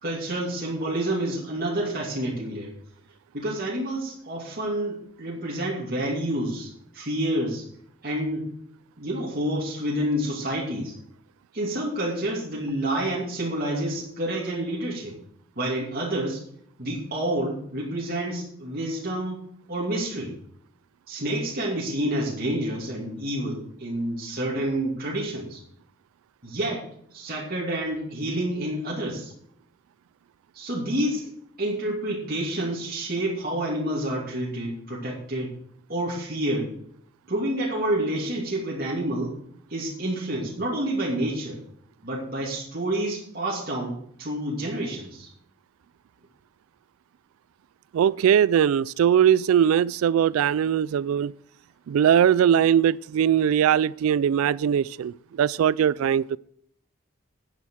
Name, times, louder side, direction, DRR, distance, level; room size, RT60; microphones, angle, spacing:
voice 1, 0.0-2.7 3.3-7.6 8.0-8.5 9.0-10.9 11.5-15.2 15.6-16.4 16.8-19.4 19.7-20.3 21.1-25.6 26.4-26.9 27.1-29.3 30.5-31.3 31.6-35.5 35.9-36.7 37.3-39.3 39.7-41.6 42.0-45.3, right 1 dB, 45° right, 2.7 m, -28 dB
voice 2, 47.9-51.3 51.9-56.4, right 9 dB, 90° right, 0.3 m, -20 dB
10.5 x 9.2 x 4.8 m
head